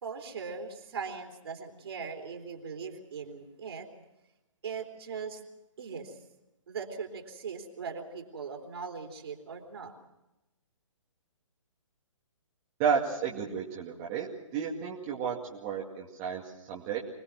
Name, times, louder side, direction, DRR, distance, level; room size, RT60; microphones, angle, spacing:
voice 1, 0.0-3.9 4.6-5.4 5.8-6.2 6.7-9.9, right 5 dB, 50° right, 3 dB, 3.7 m, -40 dB
voice 2, 12.8-14.3 14.5-17.0, right 7 dB, 25° right, -3 dB, 2.2 m, -32 dB
25.5 x 19.5 x 6.1 m, 0.96 s
figure-of-eight pair, 130°, 17 cm